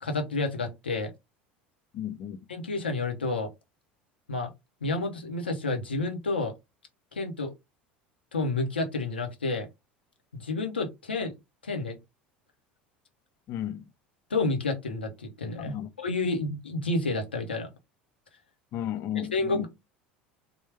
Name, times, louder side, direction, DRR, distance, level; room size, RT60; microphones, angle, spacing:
voice 1, 0.0-1.1 2.5-3.5 4.3-4.5 4.8-6.5 7.1-7.5 8.3-9.7 10.3-11.3 11.6-12.0 14.3-17.7 19.3-19.7, left 3 dB, 90° left, 0.7 m, -30 dB
voice 2, 1.9-2.4 13.5-13.9 15.6-15.9 18.7-19.7, left 11 dB, 50° left, 0.6 m, -34 dB
3.4 x 2.2 x 3.3 m
hypercardioid pair, 75°, 5 cm